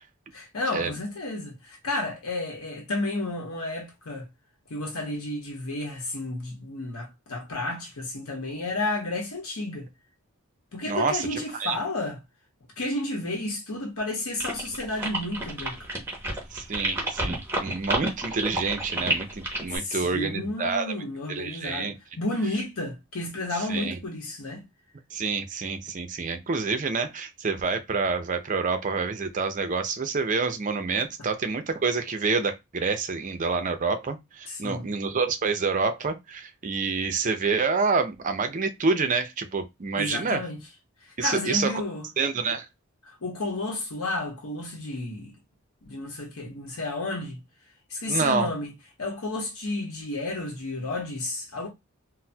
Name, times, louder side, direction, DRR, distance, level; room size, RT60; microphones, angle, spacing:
voice 1, 0.3-4.3 4.7-9.9 10.7-12.2 12.8-15.9 19.7-24.6 34.5-34.9 40.0-40.6 41.2-42.1 43.0-45.3 45.8-47.4 47.9-48.7 49.0-51.7, left 2 dB, 80° left, 0.9 m, -32 dB
voice 2, 10.9-11.8 16.5-20.9 21.3-21.9 23.6-24.0 25.1-40.4 41.2-41.8 42.2-42.7 48.1-48.5, right 4 dB, 35° right, 0.5 m, -27 dB
sound 1, 14.4-19.8, right 1 dB, 10° right, 0.8 m, -30 dB
4.1 x 2.1 x 2.2 m
head